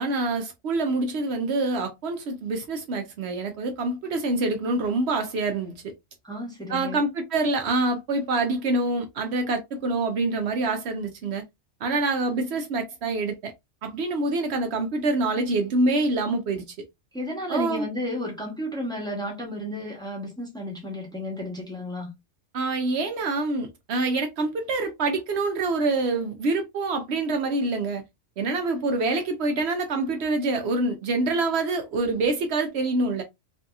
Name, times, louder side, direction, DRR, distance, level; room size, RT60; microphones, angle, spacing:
voice 1, 0.0-5.8 6.7-11.4 11.8-13.5 13.8-16.7 17.5-17.9 22.5-28.0 28.4-33.2, right 2 dB, 70° right, 0.8 m, -26 dB
voice 2, 6.2-7.0 17.1-22.1, left 1 dB, 5° left, 0.9 m, -32 dB
2.7 x 2.6 x 2.3 m
omnidirectional pair, 1.2 m